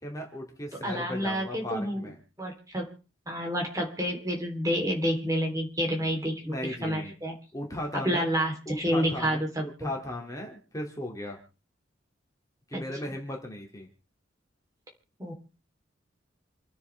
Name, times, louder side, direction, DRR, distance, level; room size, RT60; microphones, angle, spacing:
voice 1, 0.0-2.2 6.4-7.1 7.5-8.2 8.7-11.4 12.7-13.9, left 1 dB, 20° left, 0 dB, 2.9 m, -36 dB
voice 2, 0.8-2.0 2.4-2.9 3.3-7.4 7.9-9.9 12.7-12.8 15.2-15.3, equal, 20° right, 0 dB, 3.8 m, -29 dB
28.5 x 9.6 x 3.6 m, 0.35 s
head